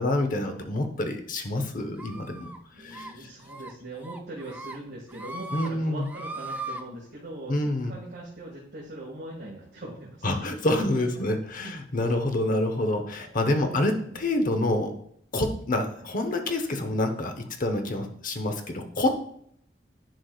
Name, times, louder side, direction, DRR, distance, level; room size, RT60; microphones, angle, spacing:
voice 1, 0.0-2.5 2.8-3.3 5.5-6.1 7.5-7.9 10.2-14.9 15.3-19.2, left 1 dB, 45° left, 6 dB, 0.9 m, -27 dB
sound 1, 2.0-2.6 2.9-3.1 3.5-3.7 4.0-4.8 5.1-5.7 6.0-6.8, right 2 dB, 10° right, 0.4 m, -38 dB
voice 2, 2.7-10.4 11.6-11.7 13.2-13.3 13.5-13.8 14.1-14.2 15.9-16.1, right 1 dB, 55° right, -6 dB, 1.9 m, -41 dB
10.5 x 4.7 x 2.4 m, 0.67 s
head